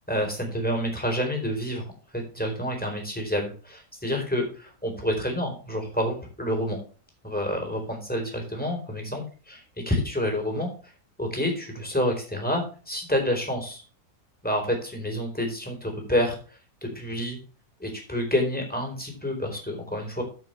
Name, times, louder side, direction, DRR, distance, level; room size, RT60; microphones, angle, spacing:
voice 1, 0.1-6.8 7.2-9.2 9.5-9.6 9.9-10.7 11.2-13.8 14.4-16.4 16.8-17.4 17.8-20.2, equal, 5° left, 1 dB, 4.0 m, -28 dB
14.5 x 6.8 x 3.3 m, 0.37 s
omnidirectional pair, 1.6 m